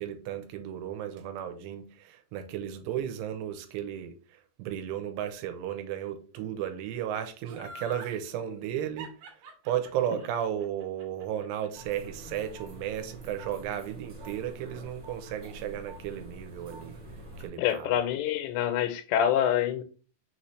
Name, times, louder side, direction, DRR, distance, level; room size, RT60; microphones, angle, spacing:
voice 1, 0.0-1.9 2.3-4.1 4.6-9.1 9.7-17.0 17.4-17.9, right 10 dB, 85° right, 2.7 m, -34 dB
Laughter, 7.5-8.2 9.0-12.1 12.4-12.5, right 2 dB, 70° right, 2.2 m, -45 dB
sound 1, 11.7-17.5, right 2 dB, 45° right, 1.2 m, -46 dB
voice 2, 17.6-19.8, left 10 dB, 90° left, 2.7 m, -26 dB
6.0 x 2.8 x 3.1 m
omnidirectional pair, 4.8 m